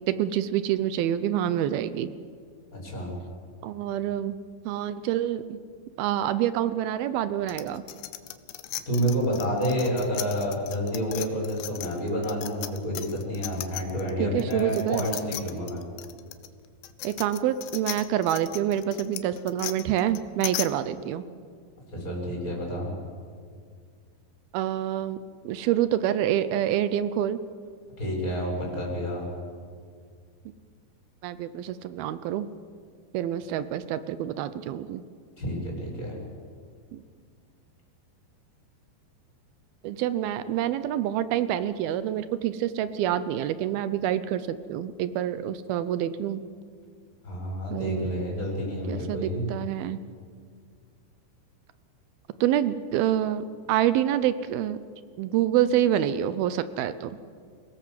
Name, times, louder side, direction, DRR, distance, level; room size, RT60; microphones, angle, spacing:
voice 1, 0.1-2.1 3.6-4.4 4.7-5.6 6.0-7.8 14.2-15.1 17.0-21.2 24.5-25.2 25.4-27.4 31.2-32.5 33.1-35.0 36.9-37.0 39.8-46.4 47.7-48.2 48.9-50.0 52.4-54.8 55.2-57.2, right 11 dB, 80° right, 13 dB, 2.2 m, -27 dB
voice 2, 2.7-3.1 8.9-15.8 21.9-22.9 28.0-29.3 35.4-36.2 47.2-49.5, equal, 20° left, -2 dB, 7.1 m, -29 dB
sound 1, 7.5-14.1 14.4-20.7, left 14 dB, 85° left, 3.3 m, -37 dB
29.0 x 18.0 x 7.6 m, 2.1 s
omnidirectional pair, 5.2 m